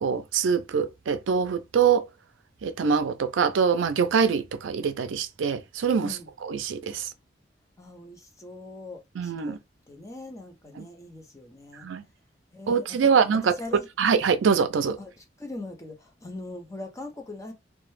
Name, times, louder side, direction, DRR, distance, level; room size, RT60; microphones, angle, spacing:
voice 1, 0.0-2.1 2.6-7.1 9.2-9.6 10.8-10.9 11.8-12.0 12.7-13.5 14.0-15.0, right 6 dB, 85° right, 0.4 m, -24 dB
voice 2, 7.8-9.6 9.9-11.9 12.5-13.0 13.6-13.9 15.0-17.5, left 2 dB, 15° left, 0.5 m, -41 dB
2.1 x 2.0 x 3.0 m
head